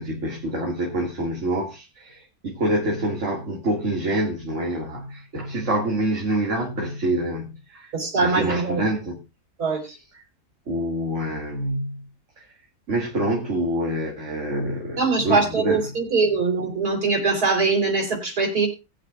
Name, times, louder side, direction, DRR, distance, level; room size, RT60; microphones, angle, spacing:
voice 1, 0.0-7.9 8.2-9.2 10.7-12.0 12.9-15.9, right 1 dB, 50° right, 2.2 m, -26 dB
voice 2, 7.9-8.8 9.6-9.8 15.0-18.7, right 4 dB, 75° right, 4.0 m, -22 dB
20.0 x 8.5 x 2.3 m
omnidirectional pair, 1.7 m